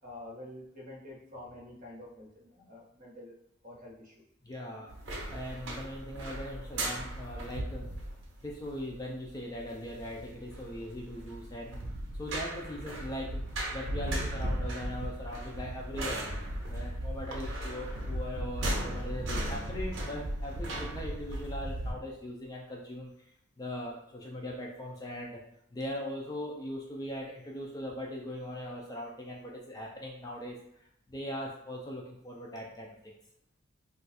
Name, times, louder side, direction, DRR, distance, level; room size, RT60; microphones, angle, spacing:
voice 1, 0.0-3.3 3.6-4.1, left 1 dB, 40° right, -4 dB, 1.0 m, -47 dB
voice 2, 4.4-4.9 5.3-7.9 8.4-11.8 12.1-25.4 25.7-33.1, left 1 dB, 20° left, -1 dB, 0.3 m, -40 dB
sound 1, 4.9-21.9, right 1 dB, 60° right, 0.6 m, -36 dB
2.4 x 2.3 x 4.0 m, 0.74 s
head